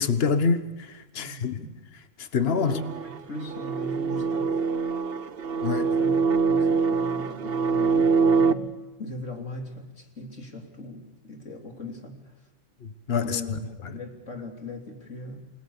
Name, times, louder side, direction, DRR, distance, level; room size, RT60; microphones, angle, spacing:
voice 1, 0.0-1.6 2.2-2.8 5.6-6.0 12.8-13.6, left 5 dB, 55° left, 1.5 m, -26 dB
voice 2, 1.2-1.7 2.6-4.6 5.9-12.3 13.2-15.5, left 1 dB, 90° left, 3.7 m, -39 dB
sound 1, 2.6-8.5, right 5 dB, 55° right, 1.1 m, -24 dB
29.0 x 19.0 x 7.2 m
omnidirectional pair, 1.3 m